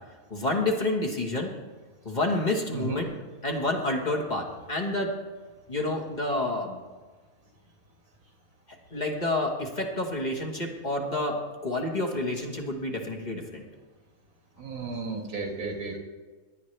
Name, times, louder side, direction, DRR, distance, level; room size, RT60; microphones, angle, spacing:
voice 1, 0.3-1.5 2.0-3.1 3.4-5.1 5.7-6.8 8.9-11.4 11.6-13.6, left 2 dB, 30° left, 0 dB, 1.4 m, -29 dB
voice 2, 14.6-16.0, right 3 dB, 85° right, 1 dB, 2.2 m, -33 dB
16.5 x 10.5 x 3.3 m, 1.4 s
omnidirectional pair, 1.5 m